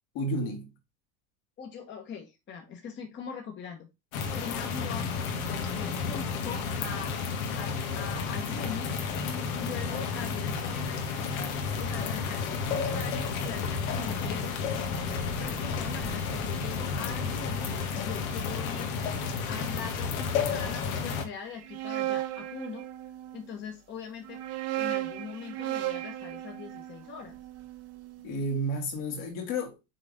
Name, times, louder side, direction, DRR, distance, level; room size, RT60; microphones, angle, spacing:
voice 1, 0.1-0.7 28.2-29.9, equal, 55° left, 2.7 m, -31 dB
voice 2, 1.6-3.9 4.3-5.1 5.8-7.2 7.6-8.9 9.6-11.1 11.8-14.6 15.4-22.9 23.3-24.4 24.8-27.4, left 6 dB, 25° left, 1.3 m, -42 dB
sound 1, 4.1-21.2, left 5 dB, 85° left, 1.8 m, -31 dB
sound 2, 21.5-23.4 24.2-28.3, right 15 dB, 35° right, 0.9 m, -35 dB
6.2 x 4.1 x 5.0 m
supercardioid pair, 145°, 41 cm